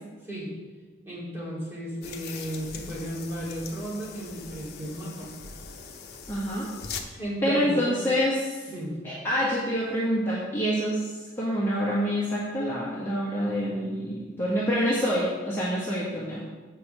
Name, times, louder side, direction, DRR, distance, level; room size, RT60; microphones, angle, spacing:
voice 1, 1.0-5.3 7.1-8.0 8.7-9.0, equal, 15° right, -6 dB, 2.7 m, -34 dB
sound 1, 2.0-7.0, left 5 dB, 55° left, 0.9 m, -41 dB
voice 2, 6.3-6.7 7.4-8.7 9.0-16.4, equal, 15° left, -8 dB, 1.5 m, -27 dB
7.6 x 5.5 x 6.7 m, 1.3 s
head